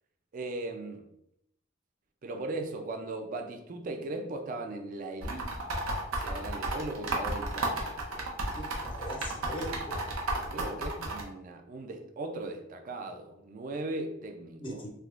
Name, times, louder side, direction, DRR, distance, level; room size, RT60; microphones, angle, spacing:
voice 1, 0.3-1.0 2.2-5.6 6.1-8.3 10.4-14.8, right 2 dB, 40° right, 5 dB, 0.3 m, -38 dB
sound 1, 5.2-11.2, right 2 dB, 80° right, 0.7 m, -33 dB
voice 2, 8.5-10.2 14.6-14.9, equal, 25° left, 3 dB, 0.4 m, -41 dB
3.4 x 2.8 x 2.4 m, 0.80 s
head